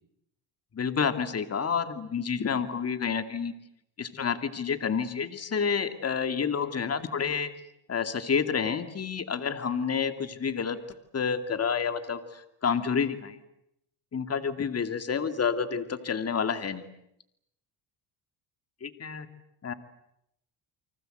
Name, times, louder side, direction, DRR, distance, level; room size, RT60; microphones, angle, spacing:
voice 1, 0.7-3.5 4.0-7.5 7.9-10.8 11.1-13.4 14.1-16.9 18.8-19.3 19.6-19.7, left 6 dB, 30° left, 10 dB, 2.5 m, -29 dB
30.0 x 24.5 x 8.0 m, 0.79 s
cardioid pair, 100°, 46 cm